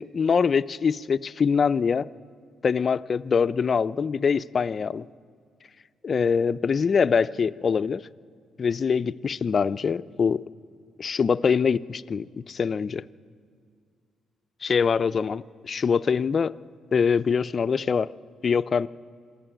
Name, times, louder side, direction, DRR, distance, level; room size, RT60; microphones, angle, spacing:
voice 1, 0.0-2.1 2.6-5.0 6.0-8.0 8.6-10.4 11.0-13.0 14.6-16.5 16.9-18.1 18.4-18.9, left 6 dB, 45° left, 15 dB, 0.5 m, -24 dB
27.0 x 12.0 x 9.1 m, 2.1 s
cardioid pair, 90°, 0 cm